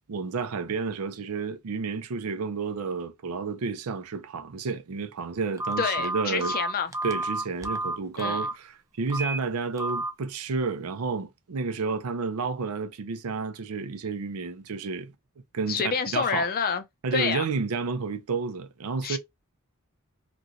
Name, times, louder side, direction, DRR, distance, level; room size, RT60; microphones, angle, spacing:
voice 1, 0.1-6.6 7.0-15.1 15.5-16.5 17.0-19.2, right 4 dB, 85° right, 0.5 m, -31 dB
Telephone, 5.6-8.5 9.1-9.4 9.8-10.1, right 2 dB, 15° right, 0.4 m, -30 dB
voice 2, 5.8-6.9 8.2-8.4 15.7-16.8 17.1-17.5 19.0-19.2, left 6 dB, 45° left, 0.5 m, -28 dB
3.0 x 2.6 x 2.5 m
head